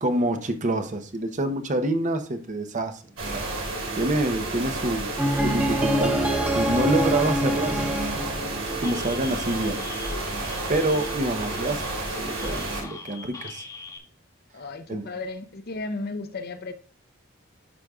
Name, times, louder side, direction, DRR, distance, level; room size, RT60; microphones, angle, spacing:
voice 1, 0.0-3.0 3.3-3.4 4.0-5.1 5.4-6.2 6.5-7.8 8.8-9.8 10.7-11.8 12.2-13.6 14.9-15.0, right 1 dB, 40° right, 0.8 m, -26 dB
sound 1, 3.2-12.8, right 2 dB, 80° right, 2.6 m, -31 dB
sound 2, 5.2-9.3, equal, 5° right, 1.1 m, -25 dB
sound 3, 8.8-14.0, left 3 dB, 20° left, 1.2 m, -41 dB
voice 2, 14.5-16.7, left 3 dB, 50° left, 0.8 m, -34 dB
11.0 x 5.2 x 2.3 m
head